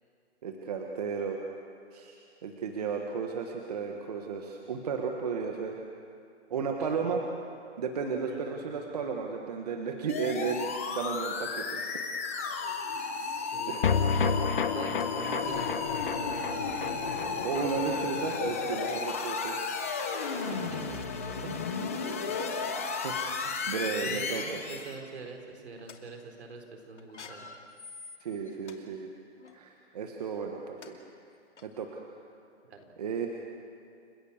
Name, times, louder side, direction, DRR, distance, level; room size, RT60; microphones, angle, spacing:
voice 1, 0.4-1.4 1.9-5.8 6.5-7.2 7.8-10.7 10.9-12.0 13.7-13.9 17.4-19.6 21.4-21.7 23.0-23.1 23.4-24.6 28.2-29.1 29.5-31.0 31.6-32.0 33.0-33.3, right 5 dB, 35° right, 2 dB, 1.5 m, -34 dB
voice 2, 6.5-7.2 8.2-8.9 13.2-14.4 14.7-17.5 20.4-21.9 22.4-22.7 23.0-23.3 24.0-27.5 32.7-32.8, right 3 dB, 70° right, 3 dB, 4.3 m, -45 dB
sound 1, 10.1-25.0, left 4 dB, 15° left, 0.7 m, -34 dB
sound 2, 13.8-20.3 20.5-20.6 20.9-21.0, left 5 dB, 45° left, 1.3 m, -32 dB
light screech, 14.7-15.1 15.7-15.8 16.1-16.4 17.7-17.8 18.7-19.1 19.9-20.0 20.5-21.2 22.1-22.8 23.2-23.3 23.6-23.9 24.2-24.6 25.2-25.4 25.8-26.0 27.0-28.8 29.4-29.6 30.4-30.5 30.8-30.9 31.6-31.7, left 5 dB, 80° left, 2.7 m, -48 dB
30.0 x 16.0 x 7.3 m, 2.4 s
hypercardioid pair, 175°, 35 cm